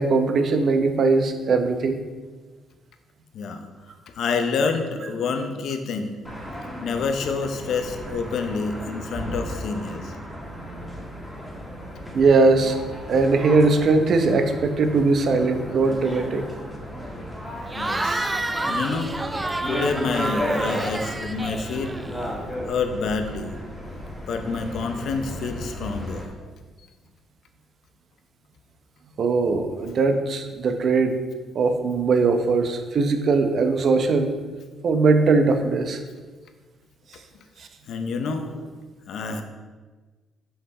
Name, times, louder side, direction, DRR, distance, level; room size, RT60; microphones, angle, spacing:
voice 1, 0.0-2.0 12.1-12.8 13.1-16.5 21.1-21.2 29.2-31.2 31.5-34.3 34.8-36.0 37.6-37.7, right 3 dB, 55° right, 6 dB, 0.8 m, -20 dB
voice 2, 3.3-3.7 4.1-6.2 6.8-10.1 17.7-18.2 18.7-19.2 19.7-21.9 22.7-23.5 24.3-26.5 29.8-30.2 37.9-38.7 39.1-39.4, left 4 dB, 70° left, 6 dB, 0.7 m, -28 dB
sound 1, 6.2-26.2, equal, 10° left, 1.8 m, -34 dB
Cheering / Crowd, 17.7-22.3, right 2 dB, 15° right, 0.5 m, -29 dB
5.9 x 5.4 x 4.1 m, 1.4 s
cardioid pair, 95°, 0 cm